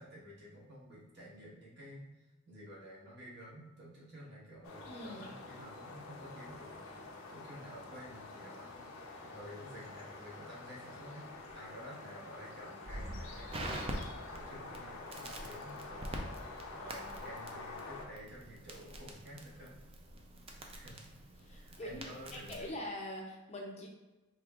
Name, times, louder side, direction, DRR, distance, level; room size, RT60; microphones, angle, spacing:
voice 1, 0.0-11.3 11.5-19.7 20.7-21.1 21.5-22.7, equal, 55° right, -6 dB, 1.4 m, -51 dB
sound 1, 4.6-18.1, left 3 dB, 85° left, 0.7 m, -48 dB
voice 2, 4.9-5.2 21.4-22.1 22.4-23.9, left 1 dB, 30° left, 0 dB, 0.6 m, -43 dB
Crackle, 12.9-22.7, right 1 dB, 25° right, 0.4 m, -45 dB
5.0 x 3.4 x 2.4 m, 1.1 s
head